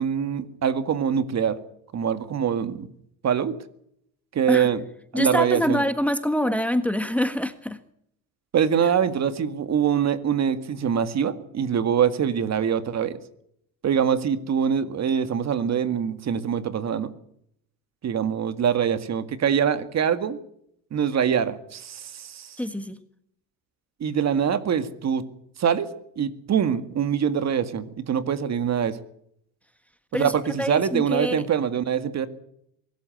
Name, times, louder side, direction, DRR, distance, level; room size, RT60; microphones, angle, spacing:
voice 1, 0.0-1.6 1.9-2.9 3.2-3.6 4.3-4.8 5.1-5.8 8.5-13.2 13.8-17.1 18.0-20.4 20.9-22.6 24.0-25.2 25.6-29.0 30.1-32.3, right 8 dB, 40° right, 11 dB, 2.0 m, -24 dB
voice 2, 5.1-7.8 22.6-23.0 30.1-30.3 30.6-31.4, equal, 5° left, 10 dB, 1.5 m, -25 dB
23.5 x 13.5 x 9.3 m, 0.72 s
supercardioid pair, 105°, 40 cm